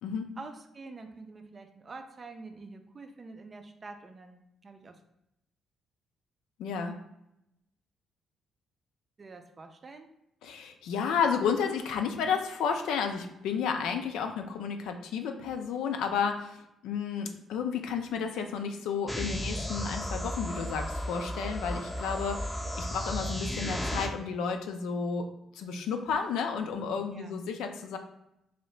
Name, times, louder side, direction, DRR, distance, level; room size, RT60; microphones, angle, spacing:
voice 1, 0.4-5.0 9.2-10.1 27.1-27.3, right 3 dB, 40° right, 6 dB, 0.5 m, -46 dB
voice 2, 6.6-7.0 10.4-16.6 16.8-25.3 25.5-28.0, left 6 dB, 75° left, 5 dB, 0.3 m, -32 dB
sound 1, 19.1-24.1, equal, 10° left, 0.6 m, -34 dB
2.8 x 2.6 x 3.2 m, 0.84 s
hypercardioid pair, 50°, 0 cm